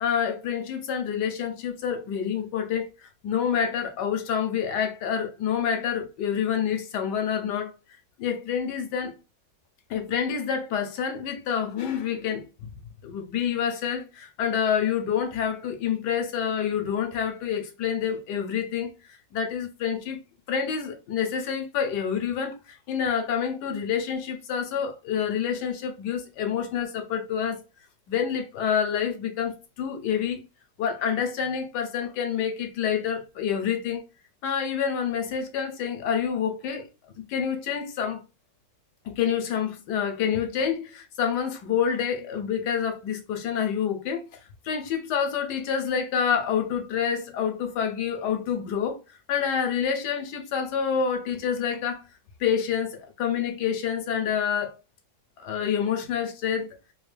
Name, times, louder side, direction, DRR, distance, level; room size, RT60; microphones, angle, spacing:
voice 1, 0.0-7.7 8.2-9.1 9.9-12.7 13.0-20.2 20.5-27.6 28.1-30.4 30.8-34.0 34.4-36.9 37.2-38.2 39.0-52.0 52.4-54.8 55.4-56.7, left 7 dB, 70° left, 1.2 m, -28 dB
3.3 x 2.5 x 3.2 m
omnidirectional pair, 2.0 m